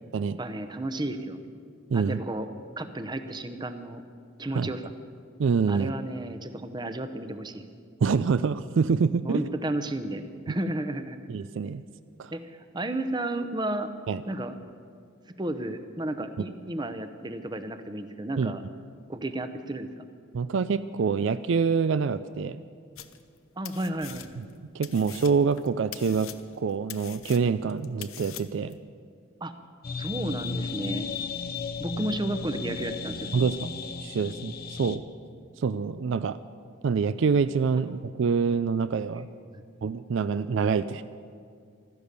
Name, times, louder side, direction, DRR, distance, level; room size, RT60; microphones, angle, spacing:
voice 1, 0.4-1.4 1.9-2.5 2.8-4.0 4.4-4.8 5.7-7.6 9.2-11.2 12.3-13.9 14.3-14.6 15.4-18.6 19.1-19.9 23.6-24.4 29.4-29.5 30.0-31.1 31.8-33.3 39.1-39.2 39.5-39.6, right 1 dB, 20° right, 9 dB, 0.8 m, -32 dB
voice 2, 5.4-5.9 8.0-9.4 10.5-10.6 11.3-11.8 12.2-12.3 14.1-14.2 18.4-18.5 20.3-22.6 24.4-28.8 33.3-33.7 34.0-35.0 35.6-36.4 36.8-39.3 39.8-41.0, right 5 dB, 65° right, 13 dB, 0.4 m, -26 dB
sound 1, 23.0-23.4 23.6-24.6 24.8-28.7, left 12 dB, 85° left, 0.7 m, -43 dB
sound 2, 29.8-35.0, left 4 dB, 50° left, 0.7 m, -34 dB
15.5 x 13.0 x 6.8 m, 2.2 s
head